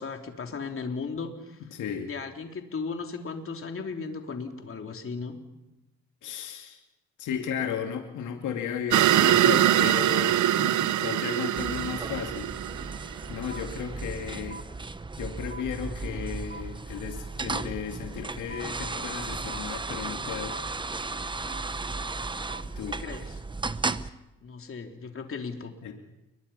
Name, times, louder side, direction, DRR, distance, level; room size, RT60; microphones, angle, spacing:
voice 1, 0.0-1.6 2.0-5.4 16.0-16.2 22.9-23.4 24.4-25.7, left 4 dB, 45° left, 4 dB, 3.5 m, -36 dB
voice 2, 1.7-2.1 6.2-6.8 7.2-12.5 13.3-14.6 15.2-20.6 22.8-23.0 25.8-25.9, left 8 dB, 80° left, 3 dB, 2.3 m, -34 dB
sound 1, 8.9-13.5, right 12 dB, 75° right, 0.8 m, -23 dB
sound 2, 11.6-24.1, right 3 dB, 15° right, 0.9 m, -35 dB
sound 3, 13.5-13.6 14.5-14.6 15.5-15.6 16.5-16.6 17.5-17.6 18.5-18.6 19.5-19.6 20.5-20.6 21.5-21.6 22.5-22.6, right 5 dB, 35° right, 1.5 m, -41 dB
29.5 x 22.5 x 5.7 m, 0.97 s
cardioid pair, 90°, 30 cm